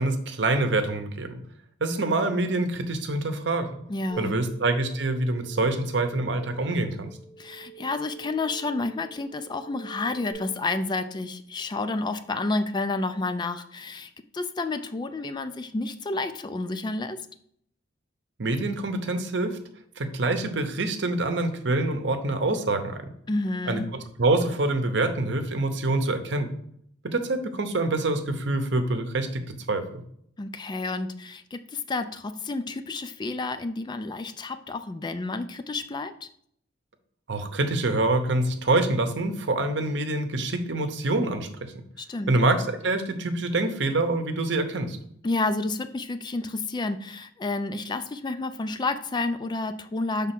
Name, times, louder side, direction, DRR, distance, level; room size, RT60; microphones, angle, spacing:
voice 1, 0.0-1.4 1.8-3.7 4.2-7.1 18.4-19.6 20.0-23.0 23.7-23.8 24.2-26.5 27.0-30.0 37.3-41.7 42.3-45.0, right 2 dB, 65° right, 7 dB, 0.8 m, -26 dB
voice 2, 3.9-4.4 7.4-17.2 23.3-23.9 30.4-36.3 42.0-42.3 45.2-50.3, left 3 dB, 25° left, 10 dB, 0.3 m, -30 dB
sound 1, 4.1-10.3, right 9 dB, 5° left, 2.1 m, -47 dB
5.5 x 3.5 x 5.9 m, 0.68 s
head